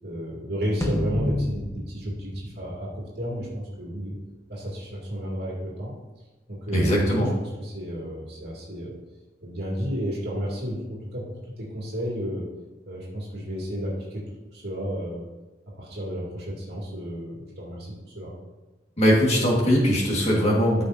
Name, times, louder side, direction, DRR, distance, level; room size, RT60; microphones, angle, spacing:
voice 1, 0.0-4.2 4.5-5.9 6.5-8.9 9.4-12.5 12.8-14.2 14.5-15.3 15.8-18.3, equal, 65° right, -5 dB, 2.4 m, -32 dB
sound 1, 0.8-3.3, left 1 dB, 15° left, 0.7 m, -30 dB
voice 2, 6.7-7.3 19.0-20.8, equal, 35° left, -3 dB, 1.8 m, -20 dB
13.5 x 5.5 x 2.7 m, 1.1 s
head